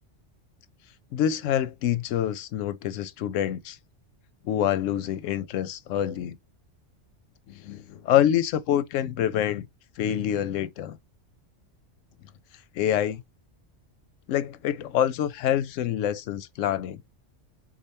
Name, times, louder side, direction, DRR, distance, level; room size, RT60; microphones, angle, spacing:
voice 1, 1.1-3.8 4.4-6.4 7.5-9.7 10.0-11.0 12.7-13.2 14.3-17.0, left 10 dB, 85° left, 0.9 m, -26 dB
5.0 x 2.3 x 4.1 m
omnidirectional pair, 1.3 m